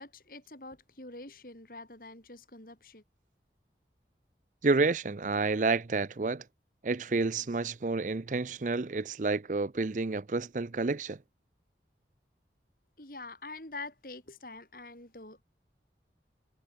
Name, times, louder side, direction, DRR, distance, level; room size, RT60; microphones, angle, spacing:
voice 1, 0.0-3.0 13.0-15.4, left 2 dB, 50° left, 4.9 m, -45 dB
voice 2, 4.6-6.4 6.8-11.2, right 3 dB, 45° right, 0.5 m, -29 dB
head